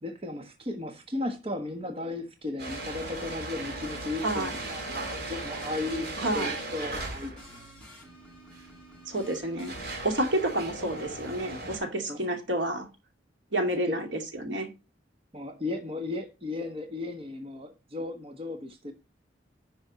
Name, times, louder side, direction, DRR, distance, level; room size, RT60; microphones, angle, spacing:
voice 1, 0.0-7.7 12.1-12.2 13.9-14.0 15.3-18.9, left 2 dB, 30° right, 1.4 m, -35 dB
sound 1, 2.6-7.6 8.5-8.6 9.3-11.8, right 2 dB, 60° right, 3.4 m, -37 dB
sound 2, 2.7-9.8, left 1 dB, 5° left, 6.4 m, -51 dB
voice 2, 6.2-6.5 9.1-9.7 10.0-12.9 13.5-14.7, right 1 dB, 75° right, 2.6 m, -29 dB
10.5 x 6.4 x 4.1 m
head